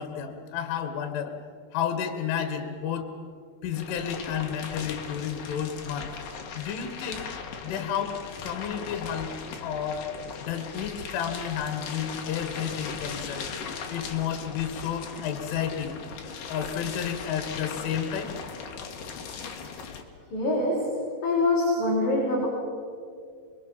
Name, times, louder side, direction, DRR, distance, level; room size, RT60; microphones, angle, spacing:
voice 1, 0.0-1.3 1.7-3.1 3.6-6.1 6.5-7.3 7.6-8.2 8.4-9.3 9.6-10.1 10.4-13.5 13.9-16.0 16.5-18.3, left 8 dB, 80° left, 7 dB, 4.1 m, -31 dB
sound 1, 3.7-20.0, left 6 dB, 55° left, 2.9 m, -38 dB
voice 2, 20.3-22.5, left 2 dB, 40° left, -5 dB, 6.4 m, -25 dB
29.5 x 22.0 x 7.3 m, 2.2 s
omnidirectional pair, 5.6 m